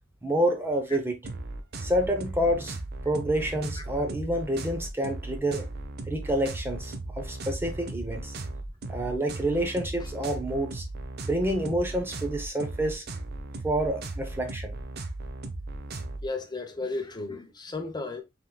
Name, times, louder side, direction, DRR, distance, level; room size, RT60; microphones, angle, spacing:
voice 1, 0.2-1.2 1.8-2.8 3.0-5.7 6.1-8.4 8.9-10.8 11.2-13.0 13.6-14.8, right 1 dB, 10° right, 0.6 m, -28 dB
sound 1, 1.2-16.2, right 2 dB, 55° right, 0.7 m, -37 dB
voice 2, 16.2-18.2, left 3 dB, 20° left, 0.8 m, -34 dB
5.6 x 3.6 x 2.2 m
head